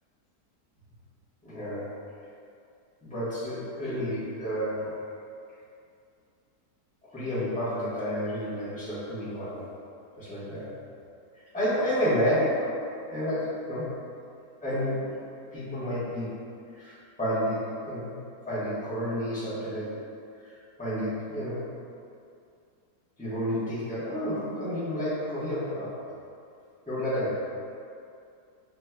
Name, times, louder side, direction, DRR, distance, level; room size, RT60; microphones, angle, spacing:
voice 1, 1.4-1.9 3.0-4.9 7.1-9.7 10.1-10.8 11.5-13.9 14.6-15.2 15.5-16.3 16.8-18.1 18.5-20.0 20.4-21.6 23.2-25.9 26.9-27.3, equal, 5° left, -13 dB, 1.1 m, -30 dB
5.1 x 3.0 x 2.2 m, 2.4 s
omnidirectional pair, 1.7 m